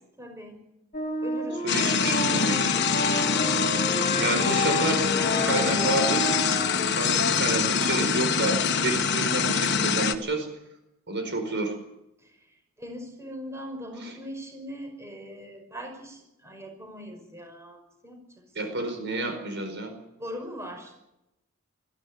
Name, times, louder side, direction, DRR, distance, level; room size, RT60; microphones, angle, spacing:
voice 1, 0.2-0.6 1.2-2.2 12.8-18.2 20.2-20.9, equal, 15° right, 3 dB, 5.7 m, -41 dB
sound 1, 0.9-6.8, left 1 dB, 35° left, 3.3 m, -30 dB
voice 2, 1.6-2.8 4.2-5.0 5.3-6.2 6.5-10.5 11.1-11.8 14.0-14.1 18.5-19.9, right 2 dB, 55° right, 6 dB, 4.8 m, -30 dB
sound 2, 1.7-10.1, left 6 dB, 55° left, 1.6 m, -25 dB
21.0 x 15.5 x 9.5 m, 0.86 s
head